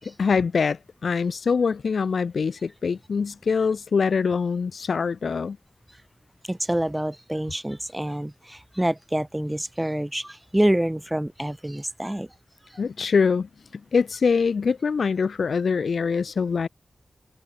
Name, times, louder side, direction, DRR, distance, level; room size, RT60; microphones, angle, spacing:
voice 1, 0.0-5.6 12.8-16.7, left 5 dB, 80° left, 2.2 m, -24 dB
voice 2, 6.5-12.3, right 1 dB, 10° right, 3.8 m, -26 dB
open air
wide cardioid pair, 90°, 0 cm